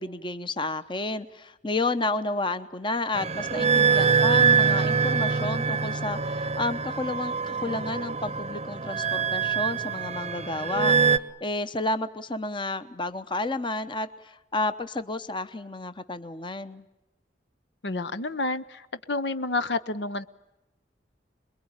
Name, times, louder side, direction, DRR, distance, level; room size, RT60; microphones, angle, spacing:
voice 1, 0.0-11.0 11.4-16.9, left 2 dB, 25° left, 11 dB, 0.9 m, -31 dB
sound 1, 3.1-11.2, right 5 dB, 35° right, 0.8 m, -24 dB
voice 2, 17.8-18.8 19.1-20.3, left 2 dB, 70° left, 12 dB, 0.9 m, -29 dB
27.5 x 21.5 x 8.9 m, 0.95 s
head